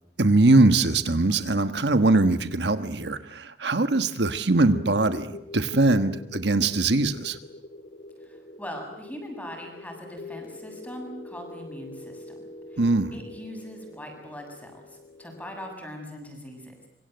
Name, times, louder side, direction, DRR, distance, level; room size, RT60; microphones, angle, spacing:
voice 1, 0.2-7.4 12.8-13.1, right 2 dB, 70° right, 10 dB, 1.4 m, -22 dB
sound 1, 4.7-15.8, left 2 dB, 55° left, 2.6 m, -44 dB
voice 2, 8.2-12.3 12.7-16.9, left 1 dB, 10° left, 3 dB, 7.5 m, -41 dB
26.5 x 24.5 x 7.9 m, 0.79 s
head